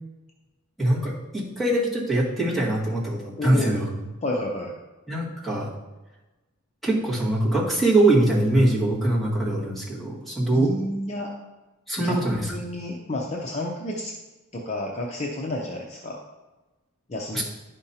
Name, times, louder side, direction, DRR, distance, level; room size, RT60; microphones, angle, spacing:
voice 1, 0.8-3.9 5.1-5.7 6.8-10.7 11.9-12.6 17.3-17.4, right 1 dB, ahead, -7 dB, 1.8 m, -23 dB
voice 2, 3.4-3.8 4.2-4.7 10.5-11.3 12.0-12.2 12.5-14.1 14.5-16.2 17.1-17.4, left 1 dB, 30° left, -1 dB, 0.6 m, -30 dB
11.0 x 5.2 x 2.8 m, 1.1 s
head